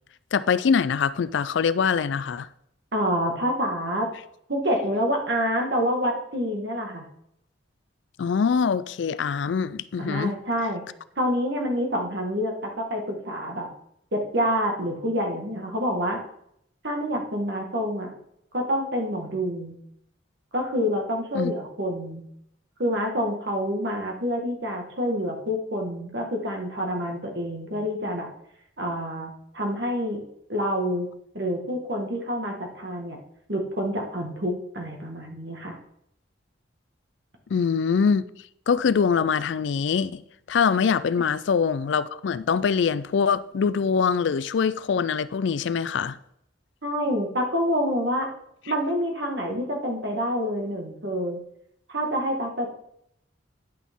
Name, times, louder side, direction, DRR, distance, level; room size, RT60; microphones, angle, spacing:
voice 1, 0.3-2.5 8.2-10.3 21.3-21.5 37.5-38.3 38.7-40.2 40.5-46.2, left 6 dB, 65° left, 0.4 m, -23 dB
voice 2, 2.9-4.1 4.5-7.0 10.0-10.8 11.2-13.7 14.1-16.2 16.8-18.2 18.5-19.8 20.5-22.2 22.8-28.3 28.8-30.2 30.5-31.1 31.3-33.2 33.5-35.8 46.8-48.3 48.7-51.4 51.9-52.7, equal, 60° right, 1.7 m, -27 dB
10.0 x 6.1 x 3.7 m
head